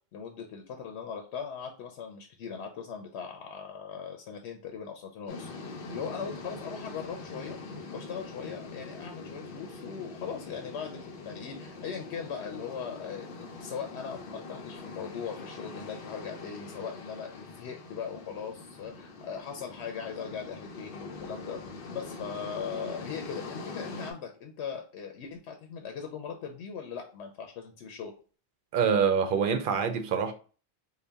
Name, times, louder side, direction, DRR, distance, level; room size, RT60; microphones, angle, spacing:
voice 1, 0.1-5.5 5.9-7.6 7.9-21.6 21.9-28.1, left 6 dB, 90° left, 0.9 m, -39 dB
sound 1, 5.3-24.1, left 3 dB, 60° left, 0.8 m, -43 dB
voice 2, 28.7-30.3, right 6 dB, 60° right, 0.6 m, -25 dB
4.0 x 2.2 x 3.3 m
omnidirectional pair, 1.1 m